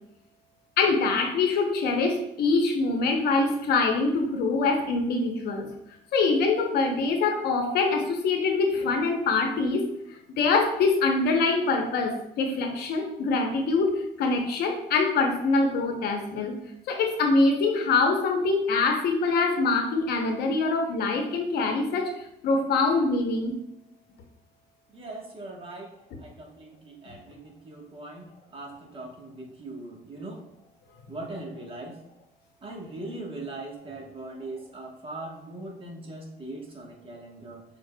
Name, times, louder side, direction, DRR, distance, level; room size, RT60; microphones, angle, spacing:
voice 1, 0.8-5.7 6.1-16.5 16.9-22.1 22.4-23.6, left 3 dB, 70° left, 4 dB, 0.8 m, -24 dB
voice 2, 24.9-25.9 26.2-30.4 31.1-32.0 32.6-37.6, right 2 dB, 30° right, 0 dB, 1.2 m, -40 dB
6.5 x 3.6 x 2.2 m, 0.82 s
cardioid pair, 110°, 17 cm